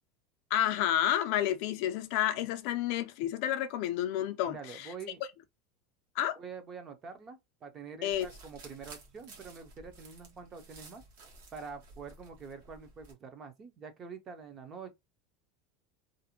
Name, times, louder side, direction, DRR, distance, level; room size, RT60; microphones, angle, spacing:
voice 1, 0.5-4.9 6.2-6.4 8.0-8.3, left 12 dB, 50° left, 0.3 m, -30 dB
voice 2, 4.5-5.2 6.4-11.0 11.5-14.9, right 5 dB, 20° right, 0.4 m, -46 dB
sound 1, 8.1-13.1, right 3 dB, 75° right, 0.9 m, -53 dB
2.5 x 2.0 x 2.8 m
supercardioid pair, 180°, 0 cm